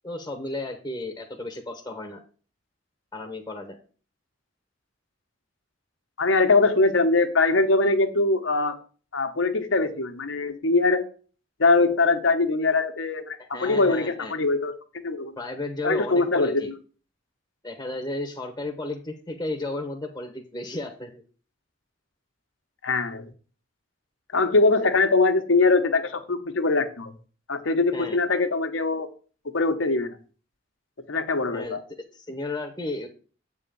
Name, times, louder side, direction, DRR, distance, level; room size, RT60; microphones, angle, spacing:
voice 1, 0.0-2.2 3.1-3.8 13.4-14.3 15.4-16.7 17.6-21.2 27.9-28.2 31.5-31.8 32.1-33.1, left 2 dB, 15° left, 4 dB, 1.0 m, -33 dB
voice 2, 6.2-8.8 9.1-11.0 11.6-14.7 15.0-15.4 15.8-16.7 22.8-23.3 24.3-27.1 27.5-29.1 29.4-30.2 31.1-31.8, left 3 dB, 85° left, 7 dB, 1.1 m, -22 dB
8.2 x 3.7 x 6.8 m, 0.39 s
head